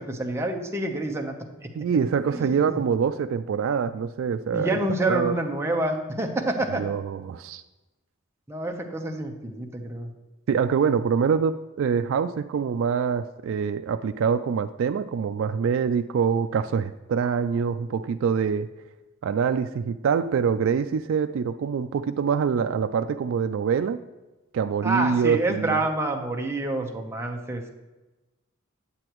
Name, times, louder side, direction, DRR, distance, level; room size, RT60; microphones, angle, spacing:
voice 1, 0.0-1.3 2.3-2.8 4.5-6.8 8.5-10.1 24.8-27.7, right 2 dB, 15° right, 2 dB, 0.8 m, -27 dB
voice 2, 1.7-4.8 5.1-5.4 6.7-7.6 10.5-18.7 19.2-24.0 24.5-25.8, right 6 dB, 65° right, 9 dB, 0.3 m, -25 dB
9.7 x 7.7 x 3.0 m, 1.1 s
head